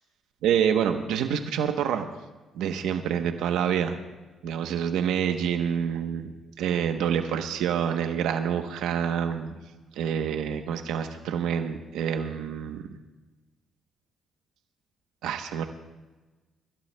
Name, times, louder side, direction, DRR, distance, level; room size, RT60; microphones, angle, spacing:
voice 1, 0.4-2.1 2.5-4.0 4.4-6.3 6.6-9.5 10.0-12.9 15.2-15.6, right 8 dB, 90° right, 6 dB, 0.9 m, -27 dB
24.5 x 14.5 x 2.2 m, 1.2 s
cardioid pair, 90°, 0 cm